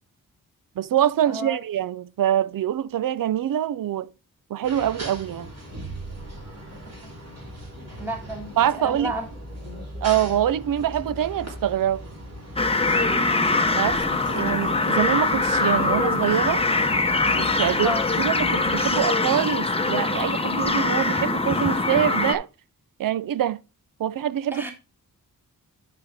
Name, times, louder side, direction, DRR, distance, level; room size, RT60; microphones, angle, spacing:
voice 1, 0.8-4.1 4.5-5.5 8.6-9.1 10.0-12.1 13.7-16.6 17.3-22.5 23.0-23.6 24.0-24.6, right 11 dB, 70° right, 0.5 m, -25 dB
voice 2, 1.3-1.6 8.0-9.3 13.0-13.5 17.8-18.0 24.5-24.7, equal, 5° right, 1.6 m, -32 dB
sound 1, 4.6-19.0, equal, 45° right, 3.3 m, -39 dB
sound 2, 12.6-22.3, left 3 dB, 15° left, 0.8 m, -23 dB
10.5 x 5.1 x 3.4 m
wide cardioid pair, 105°, 34 cm